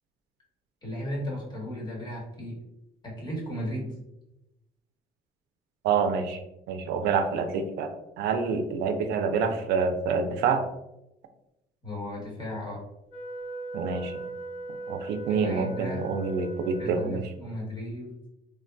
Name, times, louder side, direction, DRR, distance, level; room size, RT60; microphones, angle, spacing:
voice 1, 0.8-2.6 3.0-3.9 11.8-12.8 15.3-16.0 16.8-18.1, left 1 dB, 25° left, -4 dB, 1.4 m, -35 dB
voice 2, 5.8-6.4 6.7-7.9 8.2-10.6 13.7-14.2 14.9-17.3, right 5 dB, 80° right, 6 dB, 0.4 m, -27 dB
Wind instrument woodwind instrument, 13.1-17.5, right 2 dB, 60° left, 1.4 m, -39 dB
3.4 x 2.2 x 2.5 m, 0.90 s
cardioid pair, 110°, 17 cm